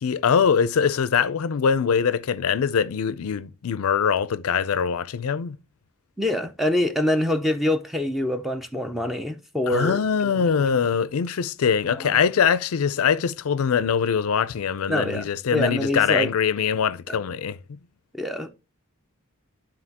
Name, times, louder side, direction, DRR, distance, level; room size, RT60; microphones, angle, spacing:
voice 1, 0.0-5.6 9.7-17.8, left 7 dB, 75° left, 0.4 m, -23 dB
voice 2, 6.2-10.4 12.0-12.2 14.9-16.3 17.1-17.2 18.1-18.5, left 1 dB, ahead, 0.5 m, -25 dB
11.0 x 3.8 x 2.8 m
head